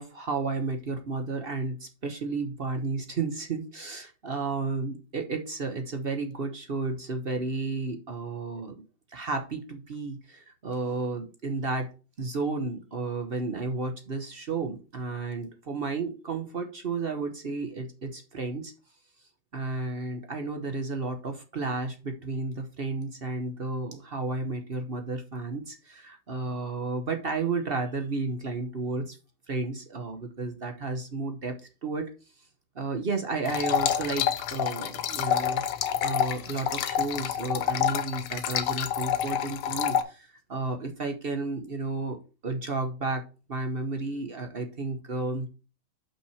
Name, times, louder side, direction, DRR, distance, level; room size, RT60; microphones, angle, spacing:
voice 1, 0.0-8.8 9.1-11.9 12.2-18.7 19.5-29.2 29.5-31.6 31.8-32.1 32.7-35.6 36.0-43.2 43.5-45.5, right 3 dB, 50° right, 5 dB, 0.6 m, -32 dB
sound 1, 33.5-40.0, left 9 dB, 85° left, 1.7 m, -28 dB
6.2 x 5.7 x 4.8 m, 0.33 s
omnidirectional pair, 2.4 m